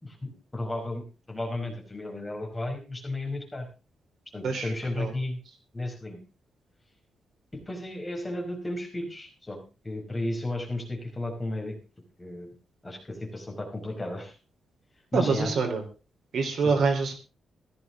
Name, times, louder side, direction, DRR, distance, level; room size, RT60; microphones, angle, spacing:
voice 1, 0.0-3.7 4.3-5.4 5.7-6.2 7.7-9.6 9.8-11.8 12.2-12.5 12.8-14.4 15.1-15.6 16.6-16.7, left 1 dB, 15° left, 1 dB, 5.0 m, -34 dB
voice 2, 4.4-5.1 15.1-15.8 16.3-17.2, right 4 dB, 55° right, 5 dB, 3.7 m, -26 dB
16.0 x 13.5 x 3.7 m, 0.33 s
wide cardioid pair, 175°, 0 cm